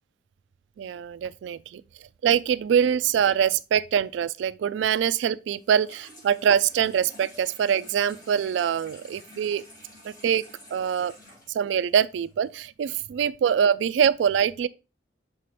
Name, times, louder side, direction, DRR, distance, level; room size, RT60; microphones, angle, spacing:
voice 1, 0.8-1.8 2.2-9.6 10.0-10.4 10.7-11.1 11.5-14.7, right 8 dB, 85° right, 0.3 m, -24 dB
Water tap faucet / Sink (filling or washing), 5.6-12.6, left 1 dB, 25° left, 4.3 m, -50 dB
6.6 x 5.4 x 3.2 m
head